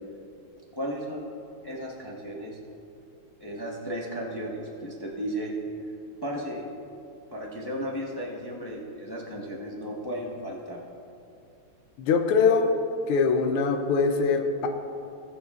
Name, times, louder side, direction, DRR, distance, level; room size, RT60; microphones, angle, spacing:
voice 1, 0.7-1.2 1.6-2.6 3.4-5.5 6.2-6.6 7.3-10.8, equal, 30° left, -3 dB, 0.4 m, -34 dB
voice 2, 12.0-12.7 13.1-14.7, left 5 dB, 80° left, 6 dB, 1.6 m, -22 dB
20.5 x 7.0 x 2.4 m, 2.6 s
omnidirectional pair, 2.4 m